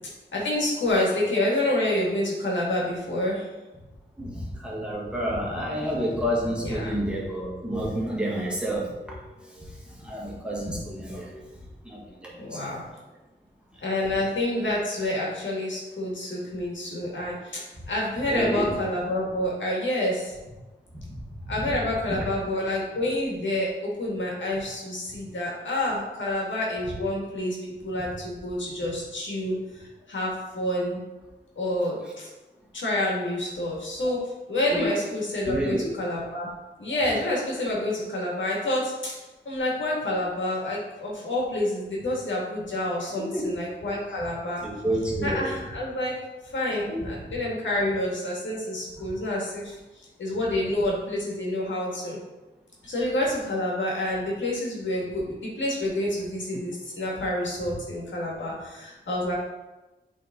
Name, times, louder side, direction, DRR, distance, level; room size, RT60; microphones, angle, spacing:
voice 1, 0.3-3.5 6.6-7.0 12.4-12.8 13.8-20.3 21.5-31.0 31.6-32.3 32.7-34.2 34.5-36.5 36.8-39.1 39.5-44.6 45.2-46.1 46.5-49.8 50.2-52.2 52.8-59.4, left 1 dB, 90° left, -4 dB, 2.0 m, -28 dB
voice 2, 4.2-9.7 10.0-11.4 11.8-12.8 14.0-14.1 18.3-18.7 20.9-21.2 21.6-21.7 22.1-22.3 34.7-34.9 35.5-35.9 36.9-37.0 43.2-43.5 44.6-45.5 46.7-47.1 49.0-49.1, equal, 5° right, -4 dB, 1.9 m, -30 dB
8.2 x 4.0 x 3.8 m, 1.1 s
wide cardioid pair, 90°, 19 cm